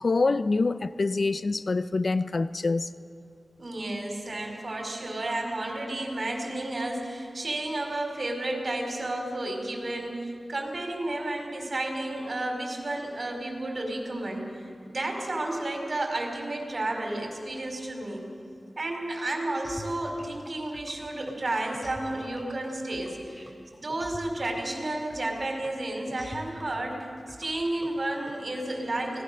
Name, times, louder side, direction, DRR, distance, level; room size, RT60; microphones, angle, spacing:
voice 1, 0.0-2.9, left 3 dB, 55° left, 0.6 m, -25 dB
voice 2, 3.6-14.5 14.8-18.3 18.8-23.5 23.8-29.2, right 1 dB, 50° right, 4.9 m, -32 dB
sound 1, 19.6-28.3, left 1 dB, 5° left, 2.6 m, -46 dB
25.0 x 18.5 x 6.9 m
wide cardioid pair, 75°, 0 cm